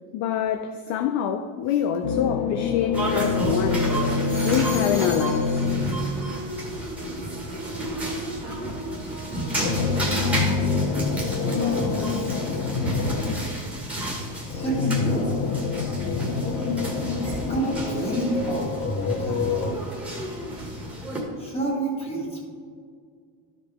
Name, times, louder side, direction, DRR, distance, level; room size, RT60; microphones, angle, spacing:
voice 1, 0.1-4.0 4.4-5.7 10.5-10.7, left 9 dB, 45° left, 0.4 m, -26 dB
sound 1, 2.0-6.6 9.5-13.7 14.5-19.7, left 5 dB, 70° left, 1.0 m, -26 dB
sound 2, 2.9-21.2, right 1 dB, 5° right, 1.7 m, -31 dB
sound 3, 3.9-9.8, right 3 dB, 25° right, 1.5 m, -39 dB
voice 2, 11.4-12.4 14.5-15.4 17.5-20.0 21.4-22.4, right 1 dB, 15° left, 1.9 m, -29 dB
12.5 x 4.9 x 3.5 m
cardioid pair, 145°, 40 cm